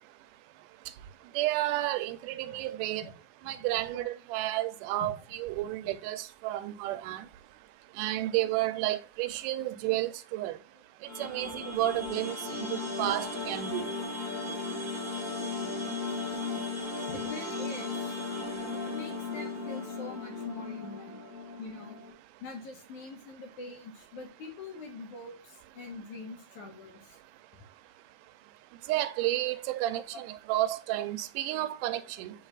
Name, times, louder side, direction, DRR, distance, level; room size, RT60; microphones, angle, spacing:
voice 1, 1.4-3.0 3.5-7.2 8.0-10.6 11.2-13.8 28.9-30.0 30.5-32.3, right 15 dB, 90° right, 2.1 m, -31 dB
voice 2, 5.6-5.9 17.1-17.9 18.7-21.2 21.6-22.0 22.4-27.2, left 3 dB, 70° left, 3.1 m, -44 dB
sound 1, 11.0-22.1, left 3 dB, 10° right, 2.1 m, -36 dB
6.1 x 4.0 x 3.8 m
omnidirectional pair, 3.6 m